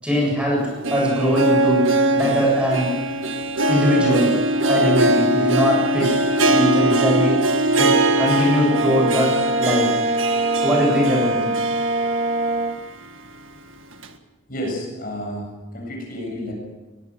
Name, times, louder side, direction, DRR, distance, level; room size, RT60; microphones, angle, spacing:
voice 1, 0.0-0.6 0.9-1.8 2.1-2.9 3.7-4.3 4.7-6.1 6.5-7.3 7.7-9.3 9.6-9.9 10.6-11.4, equal, 5° right, -1 dB, 7.5 m, -21 dB
Harp, 0.6-12.7 13.1-13.2 14.0-14.1, right 2 dB, 80° right, 1.8 m, -21 dB
Brass instrument, 8.7-12.8, right 2 dB, 40° right, 0.7 m, -23 dB
voice 2, 14.5-15.5 15.7-16.5, equal, 45° left, 0 dB, 7.8 m, -30 dB
22.0 x 21.5 x 6.3 m, 1.1 s
head